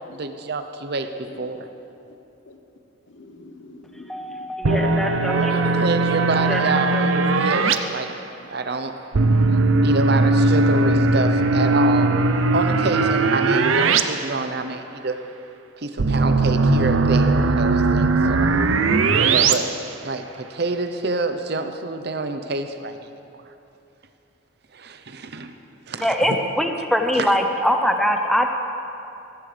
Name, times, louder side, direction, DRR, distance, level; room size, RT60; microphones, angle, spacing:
voice 1, 0.1-1.7 5.3-8.1 8.5-9.0 9.8-12.2 12.5-15.2 15.8-18.5 19.1-19.8 20.0-23.0 24.7-25.5 25.9-26.4 27.2-27.4, right 3 dB, 55° right, 8 dB, 0.7 m, -27 dB
voice 2, 3.1-4.7 9.5-9.9, left 2 dB, 65° left, 4 dB, 1.1 m, -45 dB
voice 3, 4.1-5.8 6.5-7.1 26.0-28.5, equal, ahead, 3 dB, 0.7 m, -23 dB
sound 1, 4.6-7.7 9.1-14.0 14.3-14.4 16.0-19.5, right 3 dB, 85° right, 0.6 m, -19 dB
15.0 x 15.0 x 3.3 m, 2.8 s
head